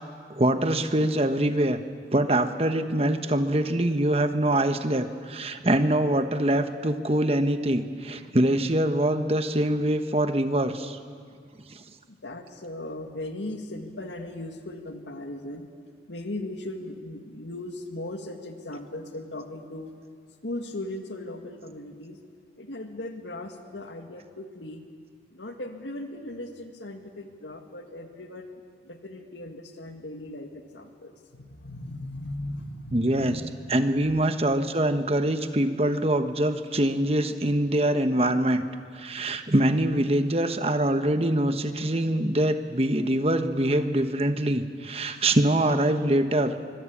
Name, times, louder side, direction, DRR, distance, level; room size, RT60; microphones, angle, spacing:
voice 1, 0.3-1.8 2.1-11.0 11.7-11.8 32.9-33.4 33.7-38.6 38.9-46.6, right 1 dB, 35° right, 8 dB, 1.1 m, -24 dB
voice 2, 12.1-15.7 16.1-19.9 20.4-22.2 22.6-24.8 25.3-33.5 34.1-34.2, left 1 dB, 85° left, 5 dB, 2.1 m, -38 dB
24.5 x 22.5 x 8.6 m, 2.1 s
head